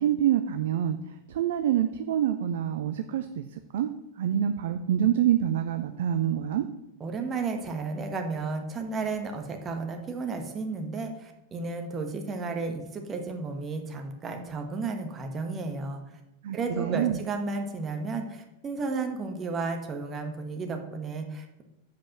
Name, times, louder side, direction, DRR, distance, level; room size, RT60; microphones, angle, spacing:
voice 1, 0.0-3.4 3.7-3.9 4.2-6.7 16.4-17.2, right 10 dB, 55° right, 9 dB, 0.5 m, -26 dB
voice 2, 7.0-16.0 16.5-21.6, right 4 dB, 25° right, 4 dB, 1.4 m, -33 dB
7.6 x 5.1 x 7.2 m, 0.90 s
figure-of-eight pair, 90°, 0 cm